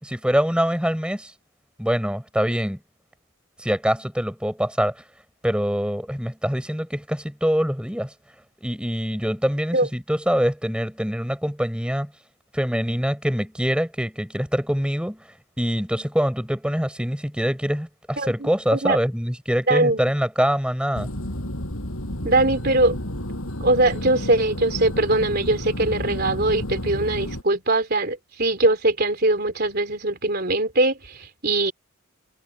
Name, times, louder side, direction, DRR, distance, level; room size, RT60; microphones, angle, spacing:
voice 1, 0.0-1.3 1.8-2.8 3.6-5.0 5.4-8.1 8.6-12.1 12.5-15.2 15.6-21.1, equal, 5° right, 5.2 m, -24 dB
voice 2, 18.2-19.0 19.7-20.0 22.2-23.0 23.6-31.7, right 2 dB, 45° right, 3.7 m, -21 dB
sound 1, 20.9-27.4, left 1 dB, 75° left, 6.5 m, -31 dB
head